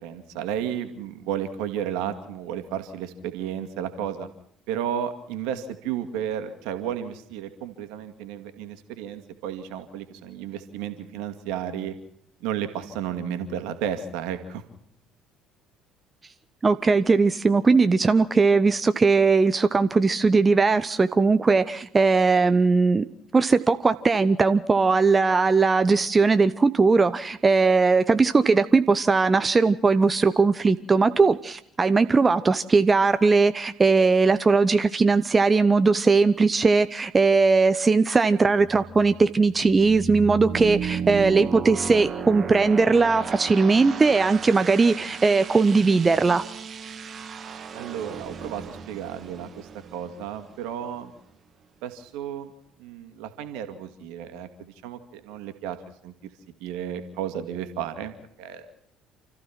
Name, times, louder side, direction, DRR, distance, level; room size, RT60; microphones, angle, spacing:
voice 1, 0.0-4.3 4.7-11.9 12.4-14.6 47.7-51.1 51.8-52.5 52.8-55.8 56.0-56.1 56.6-58.1 58.4-58.7, right 9 dB, 65° right, 8 dB, 2.3 m, -33 dB
voice 2, 16.6-23.0 23.3-46.4, right 4 dB, 25° right, 11 dB, 0.9 m, -19 dB
sound 1, 38.5-51.2, right 6 dB, 40° right, 1.8 m, -35 dB
29.0 x 14.5 x 6.1 m, 0.71 s
figure-of-eight pair, 55°, 0 cm